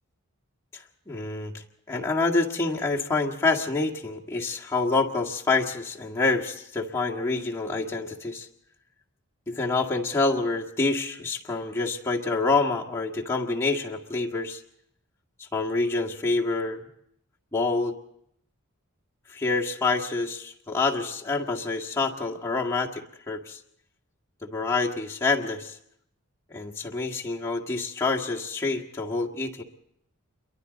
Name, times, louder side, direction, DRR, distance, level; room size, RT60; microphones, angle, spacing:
voice 1, 0.7-8.5 9.5-14.6 15.4-16.8 17.5-18.0 19.3-23.6 24.4-25.8 26.5-29.6, left 3 dB, 15° left, -3 dB, 1.8 m, -27 dB
28.0 x 23.0 x 4.1 m, 0.72 s
head